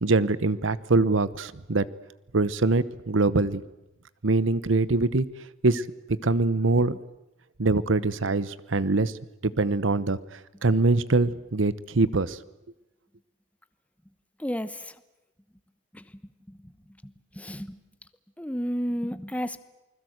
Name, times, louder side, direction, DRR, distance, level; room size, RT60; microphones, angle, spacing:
voice 1, 0.0-1.9 2.3-3.6 4.2-5.3 5.6-7.0 7.6-9.1 9.4-10.2 10.6-12.4, right 3 dB, 85° right, 17 dB, 1.0 m, -23 dB
voice 2, 14.4-14.9 15.9-16.1 16.5-16.7 17.0-17.8 18.4-19.6, equal, 5° left, 12 dB, 1.0 m, -32 dB
28.5 x 20.5 x 8.0 m, 0.97 s
head